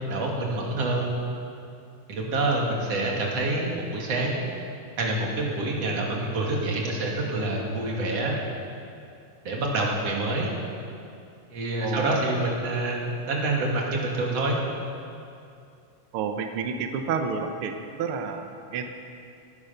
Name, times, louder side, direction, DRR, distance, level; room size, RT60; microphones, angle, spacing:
voice 1, 0.1-1.1 2.1-4.5 5.0-8.3 9.4-10.5 11.5-14.6, right 2 dB, 50° right, -2 dB, 3.1 m, -27 dB
voice 2, 11.8-12.2 16.1-18.9, right 6 dB, 85° right, 6 dB, 1.2 m, -30 dB
17.5 x 13.0 x 5.7 m, 2.5 s
omnidirectional pair, 3.9 m